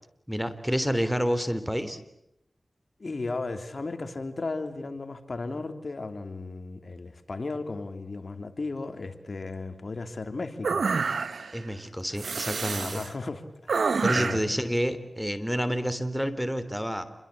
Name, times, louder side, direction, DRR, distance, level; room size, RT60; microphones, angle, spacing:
voice 1, 0.3-2.0 11.5-13.0 14.0-17.0, equal, 5° right, 13 dB, 3.5 m, -29 dB
voice 2, 3.0-10.9 12.8-14.5, left 3 dB, 60° left, 9 dB, 3.0 m, -35 dB
sound 1, 10.6-11.6 12.2-13.1 13.7-14.5, right 5 dB, 90° right, 1.4 m, -28 dB
29.0 x 23.5 x 8.5 m, 0.79 s
cardioid pair, 45°, 0 cm